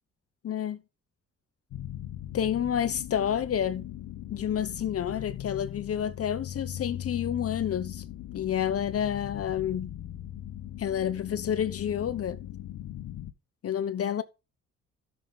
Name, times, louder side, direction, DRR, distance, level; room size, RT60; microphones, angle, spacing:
voice 1, 0.4-0.8 2.3-3.9 4.3-8.0 8.3-10.0 10.8-12.4 13.6-14.2, left 9 dB, 50° left, 0.9 m, -29 dB
sound 1, 1.7-13.3, left 12 dB, 85° left, 1.1 m, -39 dB
13.0 x 6.8 x 4.0 m
cardioid pair, 90°, 30 cm